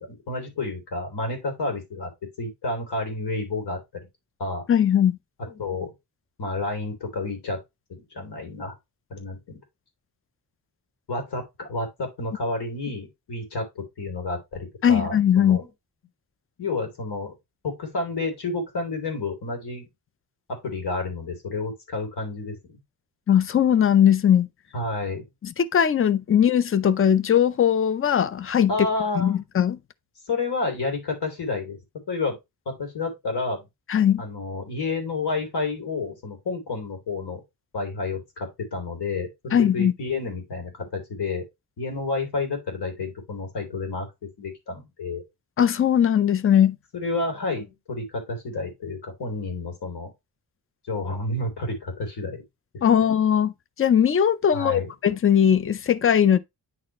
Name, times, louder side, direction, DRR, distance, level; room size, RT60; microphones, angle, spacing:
voice 1, 0.1-2.1 2.4-3.8 4.4-4.6 5.4-5.9 6.4-7.6 7.9-8.7 9.1-9.6 11.1-15.7 16.6-17.3 17.6-19.9 20.6-22.8 24.7-25.3 28.7-29.4 30.3-31.8 32.1-32.4 32.6-33.7 34.2-37.4 37.7-41.4 41.8-44.1 44.4-45.2 46.9-50.1 50.9-52.4 52.7-53.1 54.5-54.9, left 3 dB, 75° left, 3.2 m, -30 dB
voice 2, 4.7-5.2 14.8-15.6 23.3-24.5 25.4-28.7 29.2-29.8 33.9-34.2 39.5-39.9 45.6-46.8 52.8-53.5 53.8-56.4, left 9 dB, 35° left, 0.5 m, -19 dB
9.6 x 4.1 x 3.0 m
wide cardioid pair, 170°, 40 cm